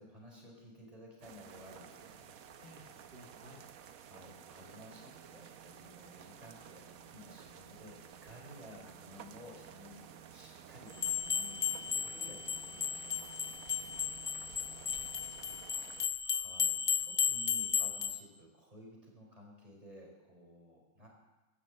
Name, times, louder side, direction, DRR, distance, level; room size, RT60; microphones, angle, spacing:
voice 1, 0.0-2.4 4.0-13.9 16.2-21.1, equal, 25° right, -1 dB, 5.0 m, -55 dB
sound 1, 1.2-16.1, right 9 dB, 75° right, 1.3 m, -53 dB
voice 2, 2.6-3.6 12.0-12.3 14.6-16.0, equal, 40° right, -4 dB, 2.7 m, -59 dB
sound 2, 11.0-18.2, left 7 dB, 50° left, 0.4 m, -34 dB
15.5 x 11.5 x 7.7 m, 1.1 s
omnidirectional pair, 1.5 m